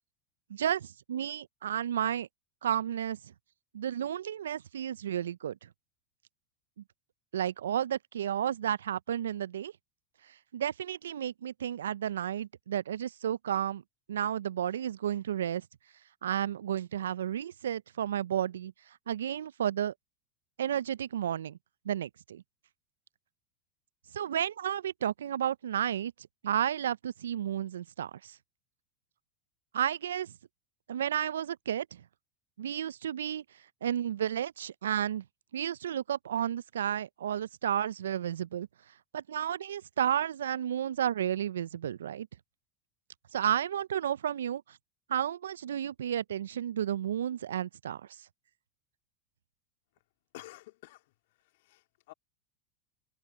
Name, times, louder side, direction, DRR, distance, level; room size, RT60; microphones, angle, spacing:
voice 1, 0.5-2.3 2.6-3.2 3.7-5.7 7.3-9.7 10.5-13.8 14.1-15.7 16.2-18.7 19.1-19.9 20.6-21.6 21.9-22.4 24.1-26.1 26.4-28.4 29.7-30.3 30.9-32.0 32.6-33.4 33.8-35.2 35.5-38.7 39.1-42.3 43.3-44.8 45.1-48.0, right 10 dB, 80° right, 0.5 m, -32 dB
voice 2, 50.3-51.0 51.6-52.1, left 19 dB, 65° left, 2.2 m, -50 dB
hypercardioid pair, 85°, 0 cm